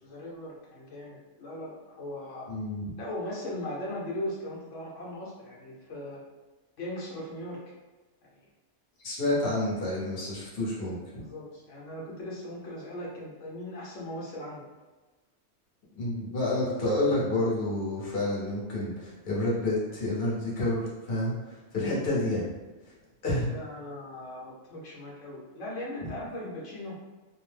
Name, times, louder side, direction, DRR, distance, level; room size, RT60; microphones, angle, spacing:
voice 1, 0.0-2.5 3.0-6.2 6.8-7.6 11.1-14.6 23.5-27.0, left 1 dB, 85° left, -5 dB, 1.2 m, -38 dB
voice 2, 2.5-2.9 9.0-11.0 16.0-21.3 21.7-22.4 23.2-23.5 26.0-26.1, left 1 dB, 55° left, -6 dB, 1.1 m, -29 dB
2.7 x 2.0 x 3.2 m, 1.2 s
omnidirectional pair, 1.2 m